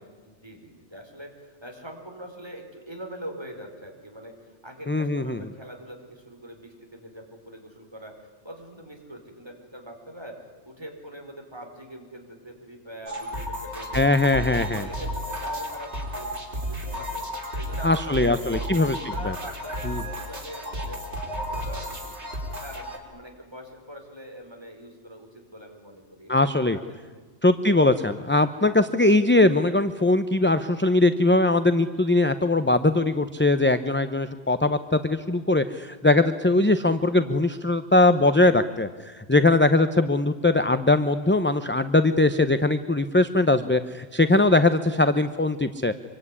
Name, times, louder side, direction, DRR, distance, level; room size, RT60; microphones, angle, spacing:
voice 1, 0.2-14.5 14.8-22.2 22.5-27.2, equal, 25° right, 2 dB, 4.8 m, -43 dB
voice 2, 4.9-5.4 13.9-14.9 17.8-19.0 19.2-19.3 19.9-20.0 26.3-26.8 27.4-46.0, left 2 dB, 10° left, 10 dB, 0.7 m, -21 dB
sound 1, 13.1-23.0, equal, 85° right, 4.2 m, -33 dB
25.5 x 23.5 x 9.9 m, 1.4 s
omnidirectional pair, 1.1 m